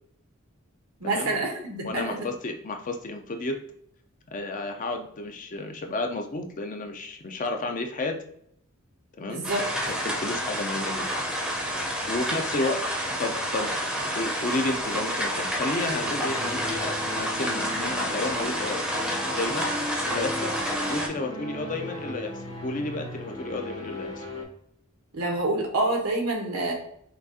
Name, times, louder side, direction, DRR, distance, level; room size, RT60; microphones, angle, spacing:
voice 1, 1.0-2.3 9.3-9.6 25.1-26.7, right 2 dB, 90° right, 1 dB, 1.2 m, -27 dB
voice 2, 1.8-3.6 4.3-8.2 9.2-9.5 10.0-11.1 12.1-12.8 13.2-13.7 14.2-18.8 19.3-19.7 20.0-20.6 20.9-24.2, left 2 dB, 40° left, 5 dB, 0.5 m, -31 dB
sound 1, 9.4-21.1, equal, 5° right, 0.6 m, -29 dB
Renaissance Strings, 15.8-24.4, left 1 dB, 65° left, 1.5 m, -36 dB
5.8 x 2.4 x 2.7 m, 0.68 s
head